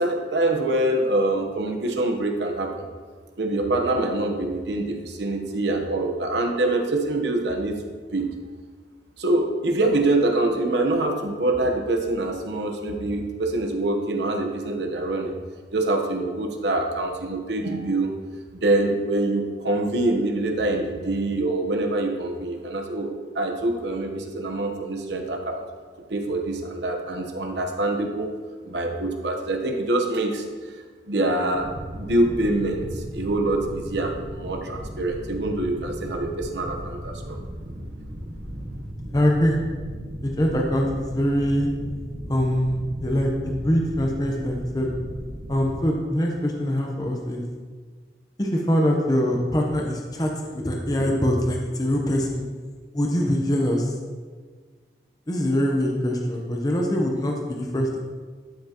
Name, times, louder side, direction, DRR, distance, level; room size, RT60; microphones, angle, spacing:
voice 1, 0.0-2.8 3.4-7.8 8.1-8.3 9.2-15.3 15.7-18.1 18.6-25.7 26.1-28.3 28.6-30.4 31.1-37.4, right 2 dB, 75° right, 3 dB, 1.0 m, -25 dB
sound 1, 31.5-45.8, equal, 50° right, 1.1 m, -36 dB
voice 2, 39.1-39.6 40.2-41.7 42.3-44.9 45.5-47.4 48.4-52.4 52.9-53.9 55.3-58.0, equal, 20° left, 0 dB, 0.8 m, -23 dB
12.0 x 5.7 x 3.0 m, 1.5 s
head